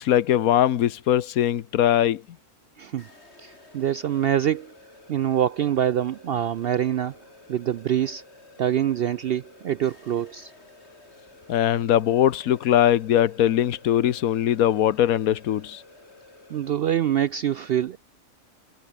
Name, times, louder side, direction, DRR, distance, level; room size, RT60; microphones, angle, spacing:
voice 1, 0.0-2.2 11.5-15.8, left 11 dB, 80° left, 1.3 m, -21 dB
sound 1, 3.0-16.7, left 2 dB, 50° left, 4.7 m, -51 dB
voice 2, 3.4-4.7 5.1-7.1 7.5-8.2 8.6-10.5 16.5-18.0, right 10 dB, 70° right, 0.5 m, -25 dB
omnidirectional pair, 1.5 m